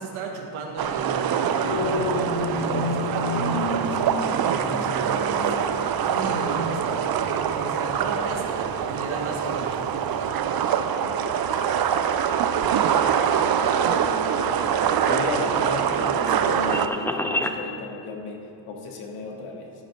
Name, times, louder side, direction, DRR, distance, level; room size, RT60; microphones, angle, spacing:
voice 1, 0.0-4.0 4.3-5.2 5.4-5.5 6.1-9.9, right 4 dB, 75° right, 1 dB, 1.4 m, -34 dB
sound 1, 0.8-16.9, right 8 dB, 50° right, 0.5 m, -24 dB
sound 2, 1.6-10.4, left 3 dB, 55° left, 1.3 m, -32 dB
voice 2, 10.8-11.8 12.2-13.5 13.7-14.6 15.1-19.7, left 3 dB, 85° left, 2 dB, 1.3 m, -35 dB
sound 3, 14.5-17.6, left 1 dB, 5° left, 0.4 m, -31 dB
12.0 x 5.5 x 4.4 m, 2.6 s
cardioid pair, 100°, 48 cm